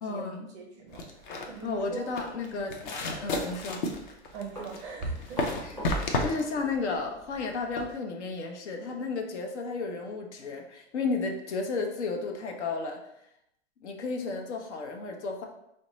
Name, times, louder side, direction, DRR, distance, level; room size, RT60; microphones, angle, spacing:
voice 1, 0.0-0.5 1.6-3.9 5.6-13.0 13.8-15.4, left 4 dB, 75° left, 3 dB, 0.8 m, -33 dB
voice 2, 0.5-2.1 2.5-2.7 4.3-5.5, right 4 dB, 25° right, 1 dB, 0.5 m, -40 dB
sound 1, 0.9-7.9, left 2 dB, 45° left, 0.6 m, -33 dB
Run, 4.5-7.1 7.4-7.6 8.8-9.0 9.4-9.5 10.0-10.1 10.4-10.6 11.1-11.2, right 1 dB, 10° left, 1.4 m, -44 dB
5.1 x 2.2 x 3.0 m, 0.81 s
hypercardioid pair, 155°, 35 cm